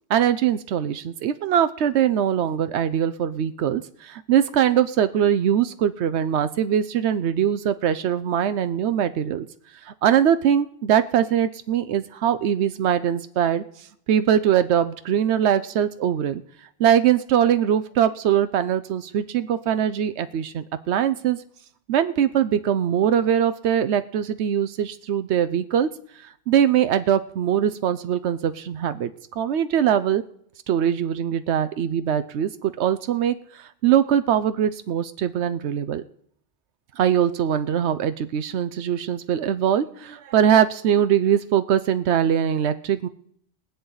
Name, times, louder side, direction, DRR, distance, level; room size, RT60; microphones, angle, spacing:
voice 1, 0.1-9.5 9.8-13.6 14.1-16.4 16.8-21.4 21.9-25.9 26.5-29.1 29.4-30.2 30.7-36.0 37.0-43.1, right 9 dB, 90° right, 11 dB, 0.9 m, -22 dB
22.5 x 8.0 x 3.9 m, 0.67 s
omnidirectional pair, 1.1 m